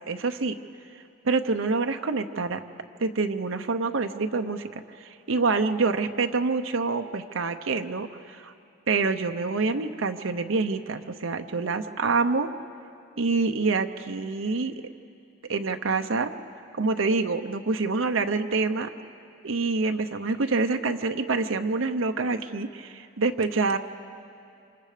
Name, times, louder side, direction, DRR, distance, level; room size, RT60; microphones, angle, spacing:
voice 1, 0.1-0.6 1.2-2.6 3.0-8.5 8.9-12.5 13.2-14.9 15.5-16.3 16.8-18.9 19.4-23.8, right 4 dB, 80° right, 6 dB, 0.8 m, -26 dB
27.5 x 26.5 x 5.0 m, 2.5 s
head